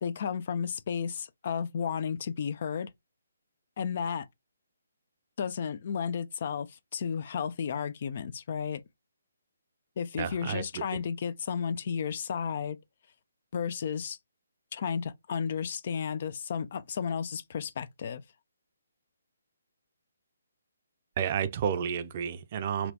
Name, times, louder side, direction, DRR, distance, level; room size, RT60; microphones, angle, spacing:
voice 1, 0.0-2.9 3.8-4.3 5.4-8.8 10.0-12.8 13.5-14.2 14.7-18.2, left 7 dB, 50° left, 0.3 m, -33 dB
voice 2, 10.2-10.8 21.2-22.9, right 8 dB, 40° right, 0.5 m, -31 dB
4.2 x 2.3 x 2.7 m
hypercardioid pair, 150°, 0 cm